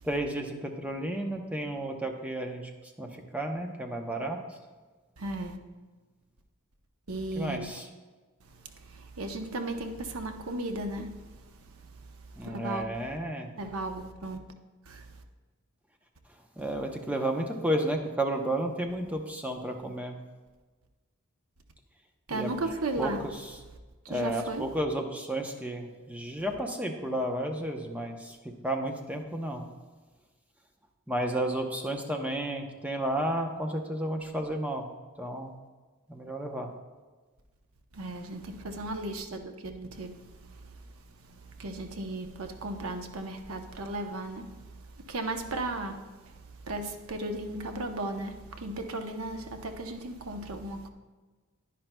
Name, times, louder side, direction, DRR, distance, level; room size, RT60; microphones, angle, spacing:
voice 1, 0.0-2.7 3.0-4.6 7.4-7.9 12.4-13.5 16.6-20.2 22.3-22.5 23.0-23.6 24.1-29.6 31.1-34.9 35.2-35.5 36.1-36.7, right 1 dB, 5° right, 0.7 m, -32 dB
voice 2, 5.2-5.6 7.1-7.7 8.5-11.8 12.4-12.8 13.6-14.4 14.9-15.1 22.3-23.2 24.0-24.7 37.9-40.7 41.2-44.6 45.1-46.3 46.6-50.9, right 2 dB, 80° right, 0.8 m, -36 dB
10.5 x 10.0 x 2.2 m
head